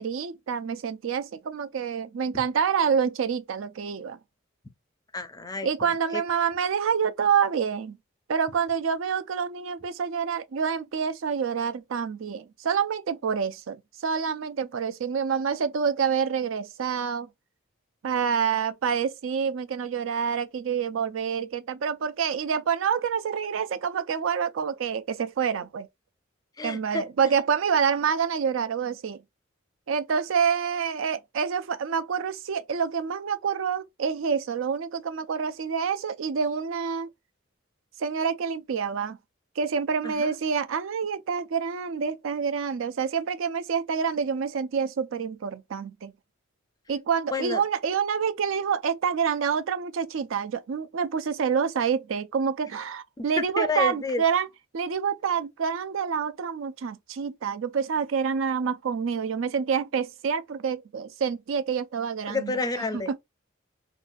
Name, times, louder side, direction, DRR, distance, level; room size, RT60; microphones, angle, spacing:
voice 1, 0.0-4.2 5.6-8.0 8.3-17.3 18.0-25.9 26.6-29.2 29.9-37.1 38.0-39.2 39.6-46.1 46.9-54.5 54.7-63.2, right 6 dB, 70° right, 0.4 m, -27 dB
voice 2, 5.1-5.7 6.1-6.2 26.6-27.0 40.0-40.3 47.3-47.6 53.2-53.3 53.6-54.2 62.3-63.1, left 3 dB, 20° left, 0.4 m, -29 dB
3.8 x 2.3 x 2.5 m
head